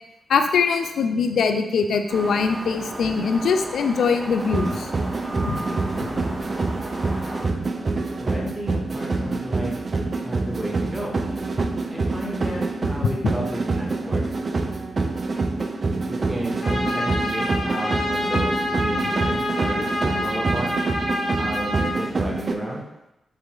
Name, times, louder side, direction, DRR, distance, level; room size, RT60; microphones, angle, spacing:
voice 1, 0.3-4.9 5.5-6.1, left 5 dB, 80° left, 6 dB, 0.3 m, -22 dB
sound 1, 2.1-7.5, right 1 dB, 35° right, 0.9 m, -34 dB
sound 2, 4.4-22.5, right 3 dB, 50° right, 0.4 m, -26 dB
voice 2, 8.2-9.7 10.2-11.1 11.9-14.2 16.0-20.8 21.4-22.8, right 1 dB, 15° right, -3 dB, 1.3 m, -32 dB
Trumpet, 16.6-22.0, left 1 dB, 50° left, 1.5 m, -27 dB
3.4 x 3.3 x 3.0 m, 0.90 s
supercardioid pair, 45°, 0 cm